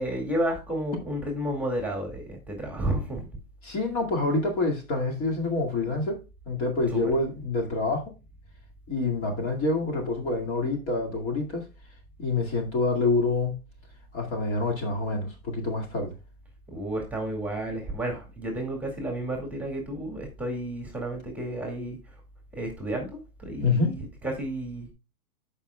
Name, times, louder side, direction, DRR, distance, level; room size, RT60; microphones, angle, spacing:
voice 1, 0.0-3.3 6.9-7.0 16.7-22.0 22.5-24.9, right 1 dB, 5° right, 2.1 m, -31 dB
voice 2, 3.6-8.1 8.9-11.7 12.2-13.5 14.1-16.1 23.6-23.9, left 3 dB, 30° left, 2.2 m, -27 dB
13.5 x 5.4 x 2.3 m
hypercardioid pair, 130°, 44 cm